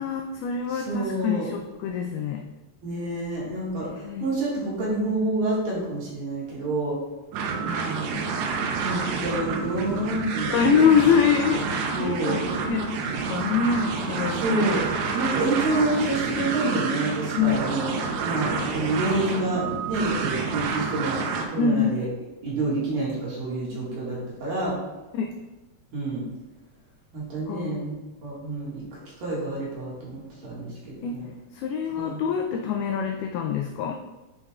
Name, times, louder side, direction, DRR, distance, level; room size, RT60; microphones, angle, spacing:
voice 1, 0.0-2.5 3.9-4.3 9.2-9.3 10.5-14.8 17.4-17.7 21.6-22.0 25.1-25.3 27.5-27.9 31.0-31.2 31.5-33.9, left 6 dB, 85° left, 3 dB, 2.2 m, -25 dB
voice 2, 0.7-1.5 2.8-7.0 7.6-8.2 8.8-10.9 11.9-12.6 14.4-14.9 15.1-17.9 18.2-21.2 21.5-22.1 22.4-24.8 25.9-26.2 27.1-28.8 29.2-31.2 32.0-32.2, right 2 dB, 60° right, -6 dB, 3.2 m, -28 dB
sound 1, 7.3-21.5, right 5 dB, 80° right, 2.7 m, -29 dB
9.6 x 5.3 x 2.3 m, 1.1 s
omnidirectional pair, 5.0 m